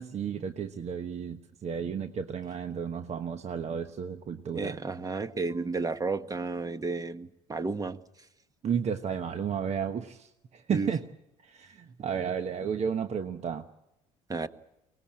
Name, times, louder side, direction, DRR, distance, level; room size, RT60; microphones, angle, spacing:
voice 1, 0.0-4.8 8.6-11.0 11.4-13.7, right 7 dB, 45° right, 8 dB, 1.2 m, -33 dB
voice 2, 4.5-8.0 10.7-10.9 14.3-14.5, right 4 dB, 20° right, 11 dB, 1.3 m, -32 dB
23.5 x 19.0 x 8.9 m, 0.87 s
hypercardioid pair, 65°, 16 cm